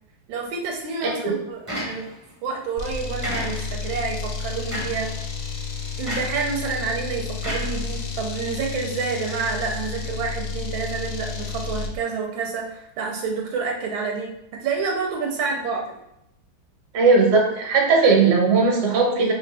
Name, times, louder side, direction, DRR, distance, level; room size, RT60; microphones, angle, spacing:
voice 1, 0.3-2.0 2.4-5.1 6.0-16.0, right 5 dB, 80° right, 0 dB, 1.4 m, -28 dB
voice 2, 1.0-1.3 16.9-19.3, right 4 dB, 60° right, 0 dB, 1.3 m, -18 dB
sound 1, 1.7-2.3 3.2-3.9 4.7-5.1 6.1-6.5 7.4-8.3, equal, 15° right, 0.5 m, -32 dB
sound 2, 2.8-12.0, left 5 dB, 75° left, 0.9 m, -31 dB
3.6 x 2.8 x 3.3 m, 0.81 s
omnidirectional pair, 2.2 m